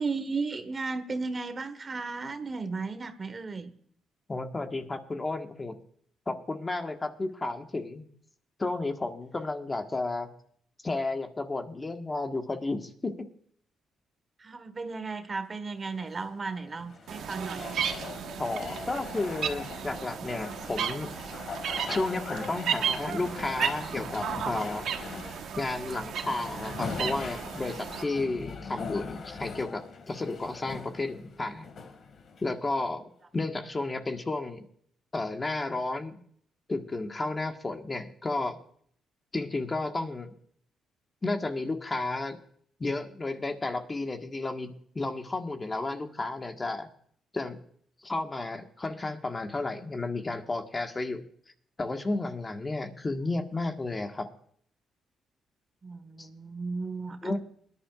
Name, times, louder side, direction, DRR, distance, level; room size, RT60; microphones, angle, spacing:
voice 1, 0.0-3.7 14.4-17.7 55.8-57.4, right 4 dB, 35° right, 10 dB, 1.4 m, -35 dB
voice 2, 4.3-5.8 6.3-8.0 8.6-10.3 10.8-13.3 18.4-21.1 21.9-24.9 25.2-31.7 32.4-34.7 35.1-36.2 36.7-38.6 39.3-40.3 41.2-42.4 42.8-46.9 47.3-47.6 48.0-51.2 51.8-54.3 56.2-56.3 57.2-57.4, left 2 dB, 25° left, 5 dB, 1.5 m, -32 dB
sound 1, 15.8-32.8, left 5 dB, 55° left, 2.2 m, -41 dB
sound 2, 17.1-28.0, right 8 dB, 75° right, 1.2 m, -34 dB
22.5 x 11.0 x 2.5 m, 0.62 s
cardioid pair, 90°, 0 cm